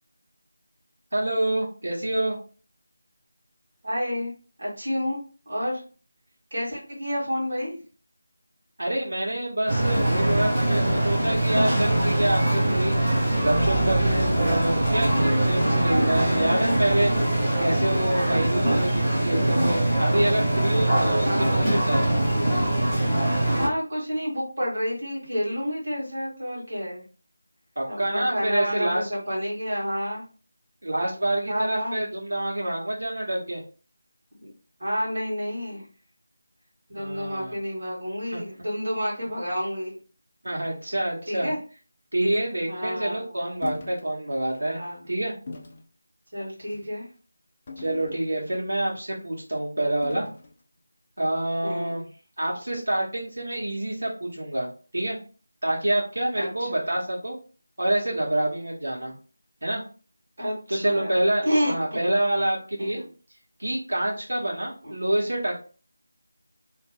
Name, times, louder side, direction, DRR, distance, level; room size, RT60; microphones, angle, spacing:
voice 1, 1.1-2.4 8.8-12.9 13.4-17.1 17.6-22.0 27.8-29.1 30.8-33.6 36.9-37.5 38.3-38.4 40.4-41.5 42.1-44.8 45.1-45.3 47.8-50.3 51.2-52.1 52.4-54.7 54.9-55.2 55.6-57.4 57.8-59.1 59.6-59.8 60.7-63.0 63.6-65.5, right 1 dB, 90° right, -3 dB, 1.3 m, -27 dB
voice 2, 3.8-4.3 4.6-5.2 5.4-5.8 6.5-7.8 18.3-18.4 21.2-21.7 23.6-27.0 27.9-30.2 31.5-32.0 34.3-34.5 34.8-35.8 36.9-40.0 41.3-41.6 42.7-43.2 44.6-45.1 46.3-47.1 51.6-52.0 56.3-56.9 60.4-61.7 62.0-62.1 62.8-63.1 64.8-65.0, equal, 45° right, -5 dB, 1.5 m, -29 dB
sound 1, 9.7-23.7, right 1 dB, 10° right, 0.9 m, -22 dB
sound 2, 43.6-44.1 44.5-44.7 45.5-45.8 46.6-46.9 47.7-48.6 50.0-50.5, left 3 dB, 25° left, 0.4 m, -40 dB
2.8 x 2.2 x 3.5 m, 0.37 s
figure-of-eight pair, 175°, 0 cm